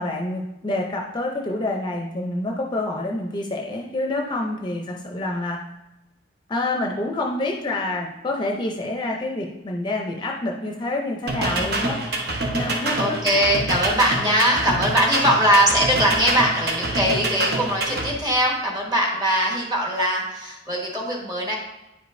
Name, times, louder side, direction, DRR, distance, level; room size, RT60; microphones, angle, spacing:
voice 1, 0.0-5.6 6.5-12.0 12.5-13.2 14.2-14.3, left 2 dB, 25° left, 1 dB, 0.6 m, -27 dB
sound 1, 11.3-18.1, right 2 dB, 60° right, 1.1 m, -26 dB
voice 2, 13.0-21.6, equal, 20° right, -1 dB, 1.4 m, -21 dB
9.8 x 5.0 x 2.6 m, 0.95 s
head